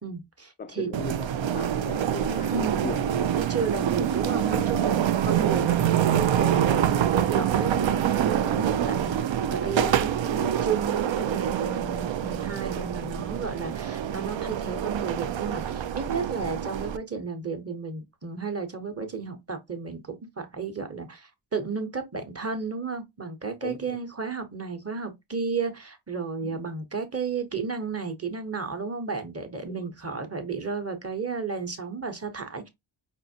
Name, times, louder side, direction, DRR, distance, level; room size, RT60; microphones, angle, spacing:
voice 1, 0.0-0.9 2.5-2.9 3.3-32.7, right 5 dB, 30° right, 0.9 m, -33 dB
voice 2, 0.6-3.0 4.5-4.6 8.7-8.9 9.9-10.0 16.2-16.3 23.6-24.0 26.4-26.6 29.8-29.9, left 6 dB, 25° left, 0.3 m, -39 dB
sound 1, 0.9-17.0, right 10 dB, 70° right, 0.5 m, -26 dB
5.3 x 2.6 x 2.8 m
wide cardioid pair, 105°, 48 cm